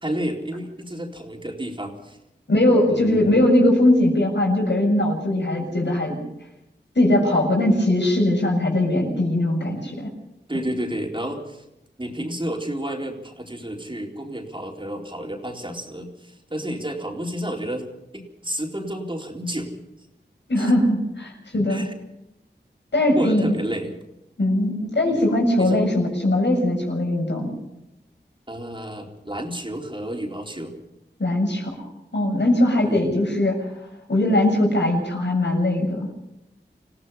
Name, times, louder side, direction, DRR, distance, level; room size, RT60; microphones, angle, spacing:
voice 1, 0.0-2.2 2.9-3.4 10.5-11.6 12.0-17.9 18.1-19.8 20.6-20.7 21.7-21.9 23.1-23.9 25.0-25.2 25.6-25.8 28.5-30.7 32.8-33.1, right 1 dB, 25° right, 1 dB, 4.0 m, -31 dB
voice 2, 2.5-6.2 7.0-10.1 20.5-21.9 22.9-23.6 24.4-27.5 31.2-31.8 32.1-33.6 34.1-36.1, left 1 dB, 75° left, 1 dB, 7.1 m, -20 dB
27.5 x 16.5 x 5.7 m, 0.87 s
wide cardioid pair, 45°, 19 cm